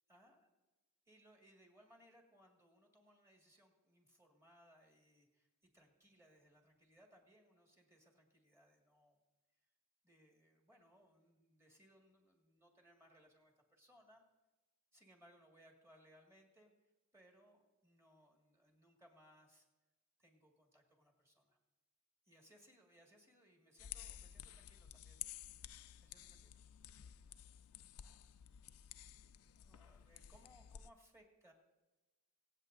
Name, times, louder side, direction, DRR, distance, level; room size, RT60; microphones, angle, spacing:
voice 1, 0.1-0.4 1.1-9.2 10.0-14.2 14.9-19.7 20.2-21.6 22.2-25.2 25.6-25.7 26.0-26.6 28.8-29.0 29.6-31.5, equal, 15° right, 0 dB, 1.9 m, -67 dB
sound 1, 23.8-30.9, left 11 dB, 75° left, 0.4 m, -53 dB
24.0 x 8.3 x 2.6 m, 1.1 s
head